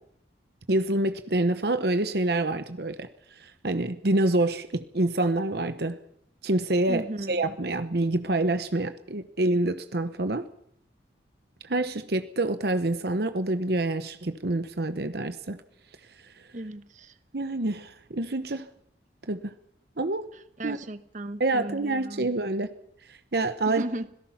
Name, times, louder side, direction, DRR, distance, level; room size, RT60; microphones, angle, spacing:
voice 1, 0.7-3.1 3.4-6.0 6.4-7.0 7.3-10.5 11.6-15.6 17.3-18.7 19.3-19.5 20.0-20.3 20.6-20.8 21.4-22.7 23.1-23.8, right 2 dB, 60° right, 10 dB, 1.0 m, -27 dB
voice 2, 6.9-7.5 16.5-17.2 20.3-22.3 23.6-24.1, right 1 dB, 45° right, 11 dB, 1.1 m, -36 dB
26.0 x 18.0 x 5.9 m, 0.68 s
head